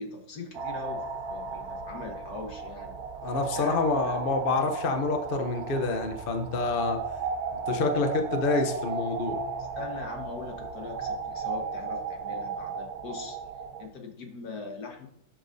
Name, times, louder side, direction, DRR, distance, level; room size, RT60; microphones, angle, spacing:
voice 1, 0.0-3.0 3.5-4.1 9.7-13.4 13.8-15.1, left 3 dB, 50° left, 3 dB, 1.7 m, -41 dB
sound 1, 0.5-13.9, right 4 dB, 80° right, 0.8 m, -35 dB
voice 2, 3.2-7.0 7.5-9.4, left 3 dB, 80° left, 6 dB, 0.5 m, -27 dB
11.5 x 7.3 x 2.7 m, 0.70 s
omnidirectional pair, 2.4 m